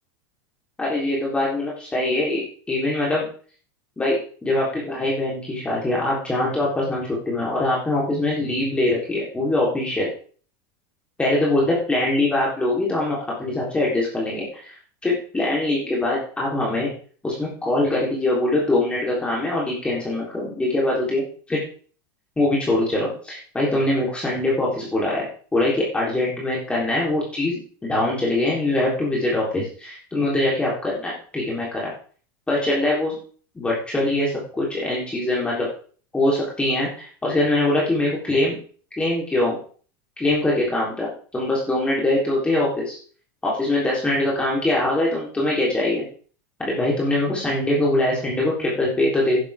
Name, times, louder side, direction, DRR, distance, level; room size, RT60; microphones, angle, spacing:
voice 1, 0.8-3.3 4.0-10.1 11.2-14.8 15.0-16.9 17.2-21.2 21.5-21.6 22.4-31.9 32.5-33.2 33.6-35.7 36.1-38.6 39.0-39.6 40.2-43.0 43.4-46.0 46.6-49.4, left 2 dB, 10° left, -5 dB, 3.6 m, -23 dB
11.5 x 11.0 x 3.6 m, 0.42 s
supercardioid pair, 140°, 11 cm